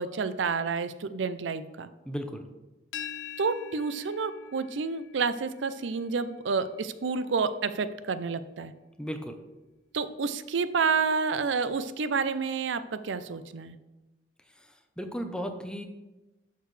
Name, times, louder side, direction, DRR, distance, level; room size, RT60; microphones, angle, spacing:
voice 1, 0.0-1.9 3.4-8.7 9.9-13.8, right 5 dB, 80° right, 12 dB, 0.5 m, -29 dB
voice 2, 2.0-2.5 9.0-9.4 15.0-15.8, equal, 5° left, 5 dB, 0.7 m, -35 dB
sound 1, 2.9-8.7, left 8 dB, 75° left, 0.5 m, -46 dB
11.5 x 6.7 x 3.3 m, 1.1 s
head